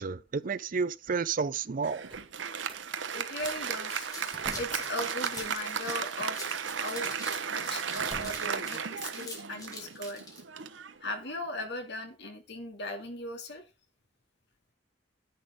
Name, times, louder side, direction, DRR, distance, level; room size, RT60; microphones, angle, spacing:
voice 1, 0.0-2.0, right 5 dB, 45° right, 0.5 m, -31 dB
Applause, 1.8-11.6, right 7 dB, 80° right, 0.9 m, -35 dB
sound 1, 2.0-2.8 3.4-3.7 4.3-4.9 5.3-5.8 6.7-6.8 7.4-7.5 8.0-8.6, right 2 dB, 30° right, 1.5 m, -45 dB
sound 2, 2.6-2.7 3.0-10.4, left 1 dB, 20° left, 3.5 m, -45 dB
voice 2, 3.1-7.1 7.5-10.2 11.0-13.6, left 2 dB, 65° left, 2.4 m, -38 dB
10.5 x 9.5 x 3.6 m
head